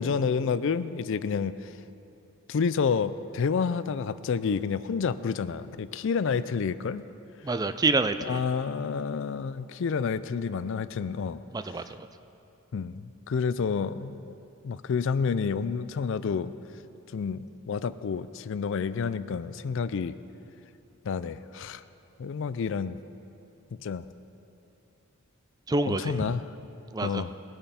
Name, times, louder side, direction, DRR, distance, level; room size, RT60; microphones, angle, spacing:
voice 1, 0.0-1.7 2.5-7.1 8.2-11.4 12.7-14.3 14.6-16.5 17.1-20.2 21.1-21.8 22.2-23.0 23.8-24.0 25.9-26.4 27.0-27.3, left 5 dB, 60° left, 15 dB, 0.4 m, -29 dB
voice 2, 7.4-8.4 11.5-11.8 25.7-26.1 26.9-27.2, right 3 dB, 20° right, 10 dB, 0.3 m, -27 dB
20.0 x 8.8 x 4.3 m, 2.9 s
head